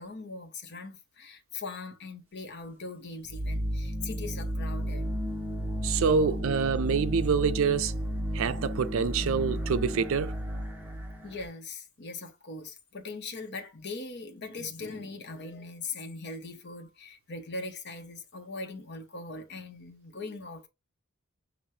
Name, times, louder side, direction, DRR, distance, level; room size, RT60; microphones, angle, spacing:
voice 1, 0.0-5.0 6.2-6.4 11.2-20.7, left 3 dB, 55° left, 1.1 m, -40 dB
sound 1, 3.2-11.4, equal, 10° right, 1.1 m, -33 dB
voice 2, 5.8-7.9 8.3-10.4, right 5 dB, 65° right, 0.4 m, -26 dB
6.6 x 2.5 x 2.7 m
head